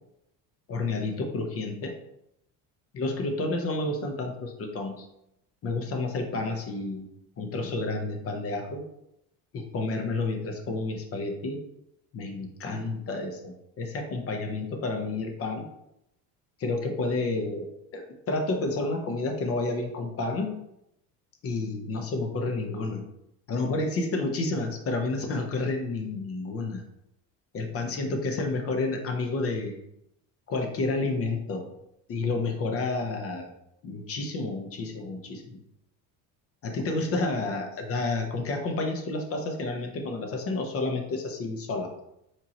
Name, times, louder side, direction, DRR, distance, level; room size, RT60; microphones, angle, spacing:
voice 1, 0.7-2.0 2.9-5.1 5.6-7.1 7.4-8.8 9.5-11.6 12.1-15.7 16.6-17.7 17.9-20.6 21.4-23.1 23.5-26.8 27.5-29.8 30.5-31.7 32.1-33.5 33.8-35.6 36.6-41.9, left 3 dB, 40° left, 4 dB, 0.8 m, -30 dB
4.5 x 3.7 x 3.0 m, 0.81 s
cardioid pair, 130°, 37 cm